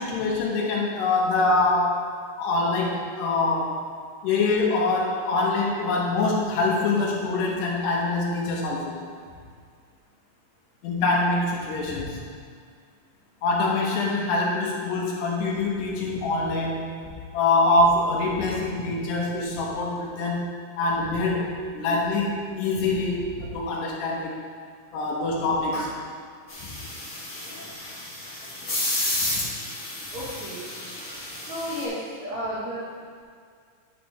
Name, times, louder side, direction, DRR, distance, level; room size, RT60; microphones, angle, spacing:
voice 1, 0.0-2.0 2.4-3.7 4.2-9.0 10.8-12.2 13.4-20.5 20.8-21.5 21.7-24.4 24.9-26.0 29.3-29.4, left 2 dB, 85° left, -3 dB, 3.4 m, -24 dB
sound 1, 26.5-31.8, left 1 dB, 30° left, 1.9 m, -31 dB
voice 2, 30.1-30.7 31.5-32.9, equal, 55° right, -8 dB, 2.3 m, -32 dB
10.5 x 7.4 x 3.4 m, 2.1 s
omnidirectional pair, 4.8 m